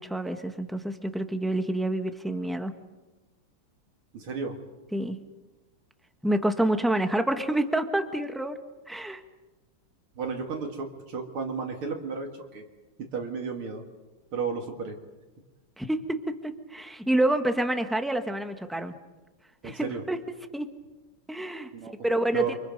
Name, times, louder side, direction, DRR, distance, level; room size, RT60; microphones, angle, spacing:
voice 1, 0.0-2.7 4.9-5.2 6.2-8.6 8.9-9.2 15.8-16.2 16.4-18.9 19.6-20.2 20.5-20.7 21.3-21.7 22.0-22.6, right 1 dB, ahead, 7 dB, 1.0 m, -28 dB
voice 2, 4.1-4.6 10.2-12.6 13.0-13.8 14.3-15.0 19.6-20.0 21.7-21.9 22.3-22.5, right 5 dB, 80° right, 2 dB, 3.0 m, -32 dB
30.0 x 25.5 x 5.4 m, 1.2 s
omnidirectional pair, 2.3 m